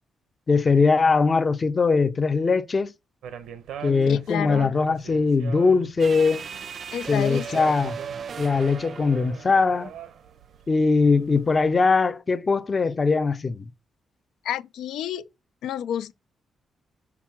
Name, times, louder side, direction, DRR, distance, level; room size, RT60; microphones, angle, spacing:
voice 1, 0.5-2.9 3.8-6.5 7.1-8.0 8.4-9.9 10.7-13.7, left 4 dB, 25° left, 0.5 m, -21 dB
sound 1, 3.2-11.8, right 8 dB, 90° right, 1.0 m, -42 dB
voice 2, 4.1-4.7 6.9-7.5 14.4-15.3 15.6-16.1, left 10 dB, 90° left, 0.4 m, -30 dB
sound 2, 6.0-10.4, right 6 dB, 35° right, 0.3 m, -37 dB
6.0 x 4.5 x 5.9 m
wide cardioid pair, 175°, 0 cm